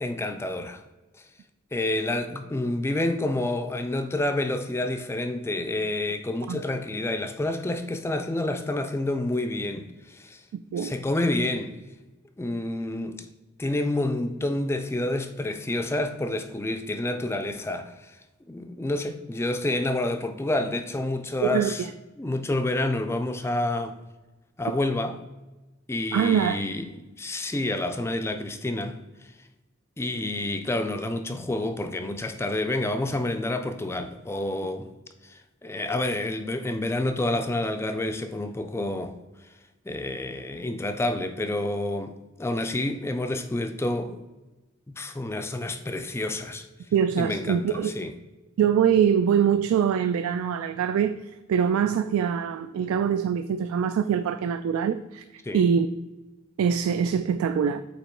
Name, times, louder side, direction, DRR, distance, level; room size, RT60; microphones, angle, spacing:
voice 1, 0.0-0.8 1.7-10.4 10.8-11.8 12.4-13.3 13.6-18.2 18.5-21.9 22.2-24.0 24.6-25.2 25.9-29.0 30.0-34.9 35.2-39.1 39.9-44.2 45.0-46.6 47.2-48.1 55.4-55.6, left 2 dB, 10° left, 0.3 m, -28 dB
voice 2, 10.5-10.9 21.4-21.9 26.1-26.6 46.9-47.9 48.6-55.2 55.5-55.9 56.6-57.8, right 8 dB, 90° right, 0.3 m, -24 dB
8.2 x 3.0 x 4.4 m
head